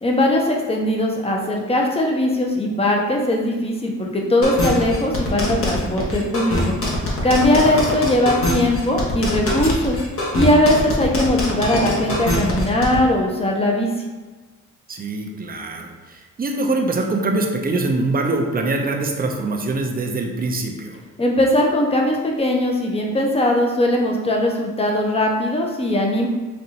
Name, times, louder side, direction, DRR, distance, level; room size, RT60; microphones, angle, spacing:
voice 1, 0.0-6.7 7.2-10.0 10.3-13.9 21.2-26.3, left 1 dB, 20° left, 0 dB, 0.9 m, -19 dB
sound 1, 4.4-13.0, left 1 dB, 45° left, 1.2 m, -23 dB
voice 2, 7.4-7.9 14.9-21.0, right 2 dB, 30° right, 2 dB, 0.7 m, -24 dB
5.3 x 2.6 x 2.9 m, 1.2 s
cardioid pair, 90°, 30 cm